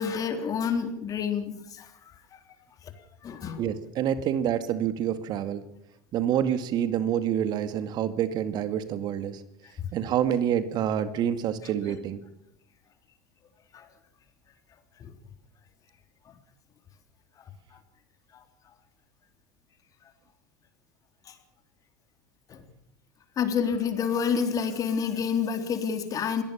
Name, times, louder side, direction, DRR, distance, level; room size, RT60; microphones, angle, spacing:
voice 1, 0.0-2.4 3.2-3.6 11.9-12.0 13.7-13.9 15.0-15.1 16.3-16.4 18.3-18.4 21.3-21.4 22.5-22.6 23.4-26.4, left 6 dB, 40° left, 7 dB, 3.6 m, -29 dB
voice 2, 3.6-5.6 6.1-9.4 9.9-12.2, right 9 dB, 50° right, 11 dB, 2.0 m, -27 dB
22.5 x 17.5 x 7.3 m, 0.79 s
hypercardioid pair, 85°, 9 cm